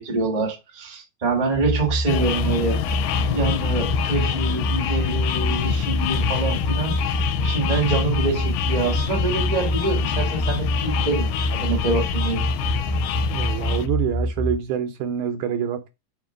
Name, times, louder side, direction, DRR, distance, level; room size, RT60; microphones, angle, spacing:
voice 1, 0.0-2.8 3.3-6.9 7.4-12.4, right 3 dB, 55° right, 0.4 m, -25 dB
sound 1, 1.5-14.6, equal, 20° left, 0.7 m, -26 dB
sound 2, 2.1-13.9, left 11 dB, 90° left, 2.3 m, -27 dB
voice 2, 13.3-15.9, right 8 dB, 75° right, 1.8 m, -26 dB
5.1 x 4.2 x 4.9 m
omnidirectional pair, 3.9 m